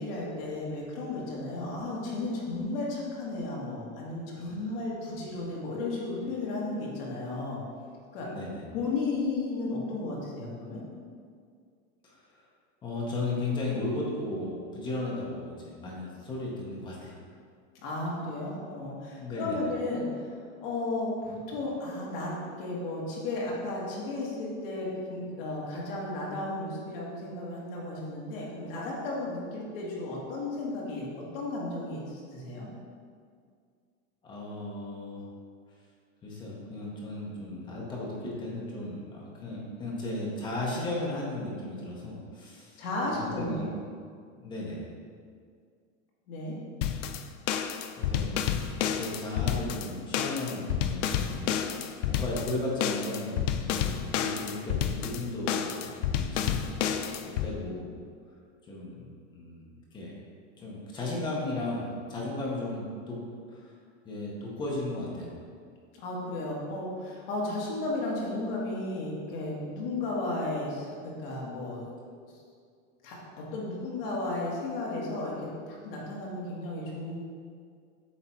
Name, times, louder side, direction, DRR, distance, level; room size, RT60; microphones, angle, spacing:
voice 1, 0.0-7.6 8.1-8.3 8.7-10.8 17.8-20.3 20.6-22.3 22.6-31.1 31.3-32.7 42.8-43.6 46.3-46.5 66.0-72.2 73.0-77.2, left 2 dB, 50° left, -4 dB, 1.6 m, -34 dB
voice 2, 8.2-8.6 12.0-12.5 12.8-17.2 19.2-19.7 34.2-35.2 36.2-43.7 44.4-44.9 48.0-53.8 54.2-57.1 57.4-57.9 58.7-60.1 60.6-63.2 63.5-63.7 64.0-65.3, left 2 dB, 15° left, -3 dB, 0.7 m, -35 dB
sound 1, 46.8-57.5, left 9 dB, 80° left, 0.6 m, -30 dB
8.0 x 3.3 x 4.4 m, 2.2 s
supercardioid pair, 180°, 37 cm